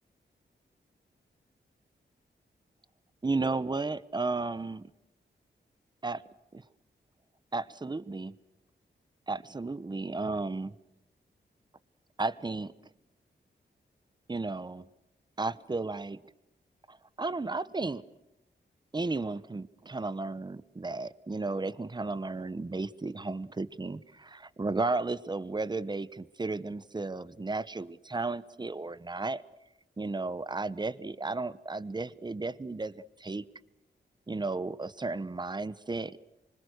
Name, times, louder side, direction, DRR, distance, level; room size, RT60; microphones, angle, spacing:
voice 1, 3.2-4.9 6.0-6.2 6.5-6.6 7.5-8.3 9.3-10.7 12.2-12.7 14.3-14.8 15.4-16.2 16.9-18.0 18.9-29.4 30.0-33.4 34.3-36.2, right 3 dB, 25° right, 17 dB, 0.9 m, -34 dB
25.5 x 25.5 x 6.5 m, 0.91 s
wide cardioid pair, 115°, 19 cm